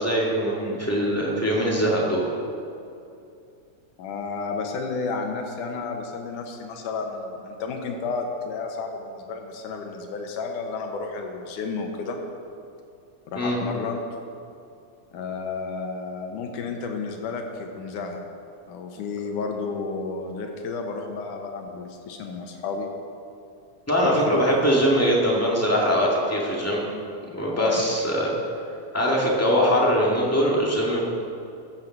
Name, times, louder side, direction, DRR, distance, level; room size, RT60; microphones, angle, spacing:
voice 1, 0.0-2.2 13.4-13.6 23.9-26.8 27.3-28.3 28.9-31.0, equal, 5° left, -4 dB, 1.8 m, -22 dB
voice 2, 4.0-12.2 13.3-14.0 15.1-18.2 18.7-22.9 24.0-24.4 27.5-27.8, left 4 dB, 80° left, 3 dB, 2.8 m, -31 dB
14.0 x 7.6 x 7.6 m, 2.6 s
omnidirectional pair, 3.6 m